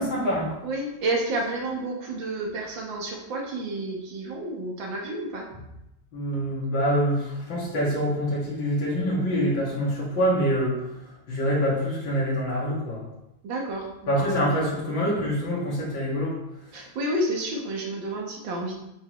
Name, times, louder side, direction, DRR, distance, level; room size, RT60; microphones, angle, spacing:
voice 1, 0.0-0.5 6.1-13.0 14.1-16.4, equal, 85° left, -5 dB, 3.1 m, -25 dB
voice 2, 0.6-5.5 13.4-14.6 16.7-18.8, right 1 dB, 85° right, 0 dB, 2.0 m, -30 dB
7.7 x 6.7 x 3.1 m, 0.89 s
omnidirectional pair, 2.0 m